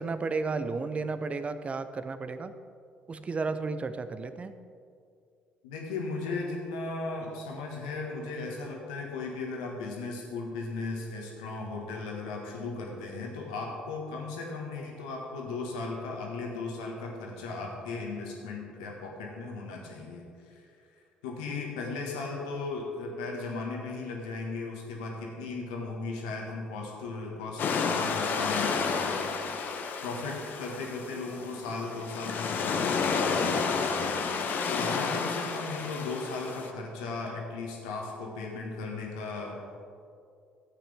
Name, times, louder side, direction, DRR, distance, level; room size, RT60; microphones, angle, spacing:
voice 1, 0.0-2.5 3.1-4.5, right 4 dB, 35° right, 11 dB, 0.7 m, -33 dB
voice 2, 5.6-20.7 21.2-29.3 30.0-34.2 34.7-39.5, left 3 dB, 75° left, 0 dB, 1.7 m, -36 dB
sound 1, 27.6-36.7, left 5 dB, 55° left, 1.0 m, -31 dB
14.5 x 8.4 x 3.5 m, 2.4 s
hypercardioid pair, 50°, 4 cm